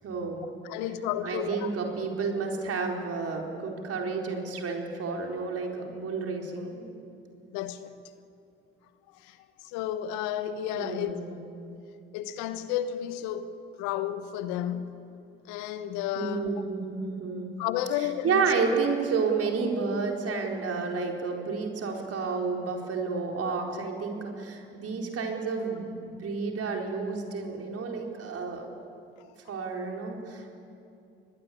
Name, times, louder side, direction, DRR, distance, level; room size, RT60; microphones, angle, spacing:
voice 1, 0.0-0.5 1.2-6.9 10.7-11.3 16.1-17.5 18.0-28.7 29.5-30.6, right 4 dB, 55° right, 4.6 m, -31 dB
voice 2, 0.6-1.7 7.5-7.9 9.2-9.4 9.6-11.2 12.1-13.5 13.8-15.0 15.5-16.5 17.6-18.6, left 10 dB, 75° left, 1.3 m, -32 dB
24.5 x 20.0 x 8.7 m
hypercardioid pair, 50°, 29 cm